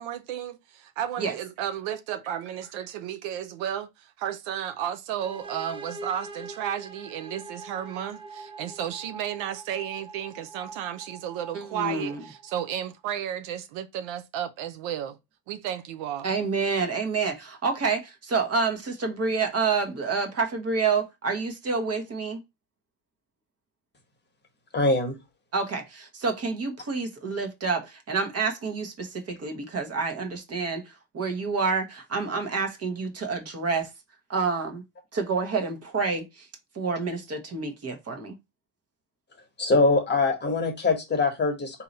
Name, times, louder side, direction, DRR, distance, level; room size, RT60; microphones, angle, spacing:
voice 1, 0.0-15.2 15.5-16.3, right 10 dB, 70° right, 0.7 m, -33 dB
sound 1, 5.2-12.9, right 3 dB, 10° right, 0.4 m, -44 dB
voice 2, 11.5-12.2 16.2-22.4 25.5-33.9 34.3-34.8 35.1-36.5 36.7-38.4, right 4 dB, 30° right, 1.0 m, -28 dB
voice 3, 24.7-25.1 39.6-41.8, left 3 dB, 20° left, 1.1 m, -23 dB
3.8 x 2.8 x 4.0 m
cardioid pair, 120°, 48 cm